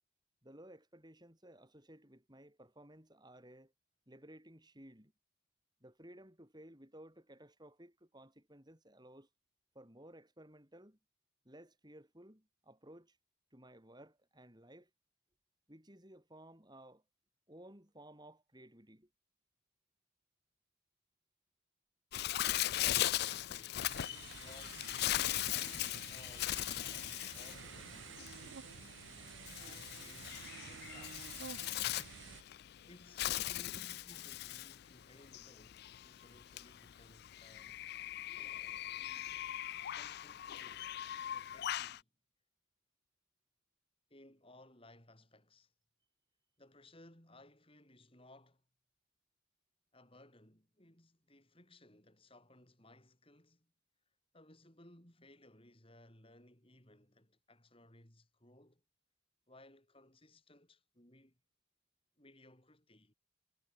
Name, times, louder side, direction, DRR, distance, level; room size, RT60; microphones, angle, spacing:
voice 1, 0.4-3.7 4.1-5.1 5.8-9.3 9.7-11.0 11.4-13.2 13.5-14.9 15.7-17.0 17.5-19.1, right 1 dB, 20° right, 3.9 m, -57 dB
Bird, 22.1-42.0, left 13 dB, 50° left, 0.3 m, -39 dB
voice 2, 22.3-25.0 25.5-29.0 29.6-31.3 32.8-37.8 39.8-40.9 41.3-42.1 44.1-45.7 46.6-48.6 49.9-53.7 54.3-58.8 59.5-61.4 62.2-63.1, left 1 dB, 25° left, 5.4 m, -61 dB
sound 1, 23.8-32.4, right 7 dB, 60° right, 0.5 m, -51 dB
head